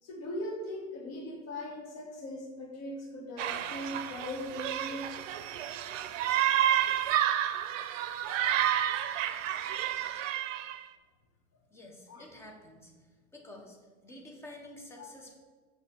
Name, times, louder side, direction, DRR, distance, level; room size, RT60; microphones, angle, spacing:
voice 1, 0.0-5.1 10.4-10.5 12.1-12.2 15.0-15.1, left 1 dB, 40° left, 0 dB, 1.5 m, -39 dB
sound 1, 3.4-10.8, right 11 dB, 75° right, 0.6 m, -30 dB
voice 2, 11.7-12.9 13.3-13.8 14.0-15.3, left 1 dB, 5° left, 1 dB, 0.6 m, -49 dB
6.7 x 2.8 x 5.5 m, 1.4 s
supercardioid pair, 145°, 39 cm